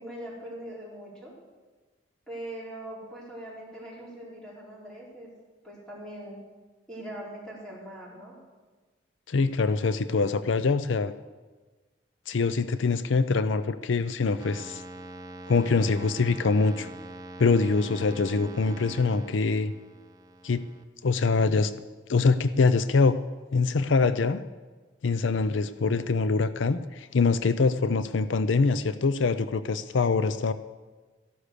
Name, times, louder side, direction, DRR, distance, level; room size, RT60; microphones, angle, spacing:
voice 1, 0.0-1.3 2.3-5.3 5.6-6.4 6.9-8.4, right 1 dB, 5° left, -6 dB, 4.4 m, -41 dB
voice 2, 9.3-11.1 12.3-14.8 15.5-16.9 17.4-19.7 20.4-20.6 21.0-21.7 22.1-23.2 23.5-24.4 25.0-30.5, left 4 dB, 80° left, 13 dB, 0.5 m, -24 dB
sound 1, 14.4-20.8, right 1 dB, 20° right, 0.7 m, -43 dB
14.0 x 11.5 x 6.7 m, 1.3 s
head